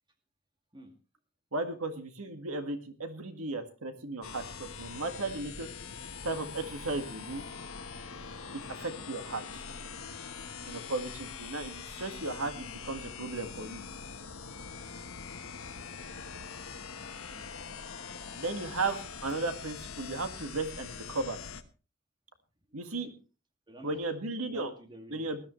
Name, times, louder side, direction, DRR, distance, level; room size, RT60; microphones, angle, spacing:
voice 1, 1.5-5.7 6.2-7.4 8.5-9.6 10.7-13.8 18.3-21.4 22.7-23.1 23.8-24.7 25.1-25.4, right 3 dB, 80° right, 7 dB, 1.9 m, -35 dB
sound 1, 4.2-21.6, left 5 dB, 75° left, 1.2 m, -43 dB
voice 2, 10.6-11.0 15.2-15.5 17.0-17.5 23.0-23.2 23.7-24.1 24.4-25.3, right 1 dB, 20° right, 4 dB, 2.3 m, -52 dB
20.0 x 13.0 x 3.2 m, 0.35 s
head